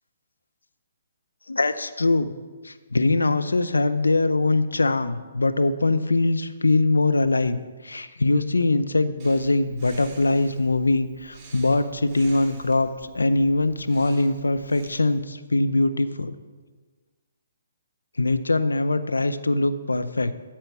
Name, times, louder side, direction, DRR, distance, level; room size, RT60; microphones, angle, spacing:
voice 1, 1.5-2.3 2.6-7.6 7.8-16.3 18.2-20.3, left 2 dB, 90° left, 10 dB, 0.6 m, -22 dB
Breathing, 9.2-15.2, right 4 dB, 20° right, 2.1 m, -49 dB
13.0 x 4.5 x 5.9 m, 1.4 s
hypercardioid pair, 140°, 0 cm